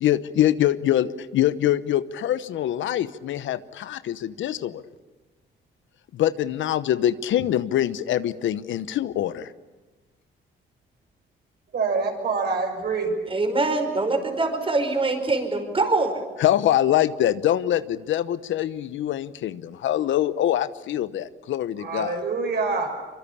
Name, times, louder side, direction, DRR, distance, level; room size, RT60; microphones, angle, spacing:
voice 1, 0.0-4.8 6.1-9.5 16.4-22.1, left 12 dB, 75° left, 15 dB, 1.0 m, -24 dB
voice 2, 11.7-13.1 21.8-23.1, right 4 dB, 55° right, 4 dB, 6.6 m, -26 dB
voice 3, 13.3-16.2, right 3 dB, 25° right, 7 dB, 5.0 m, -24 dB
25.0 x 24.0 x 8.6 m, 1.2 s
cardioid pair, 90°, 20 cm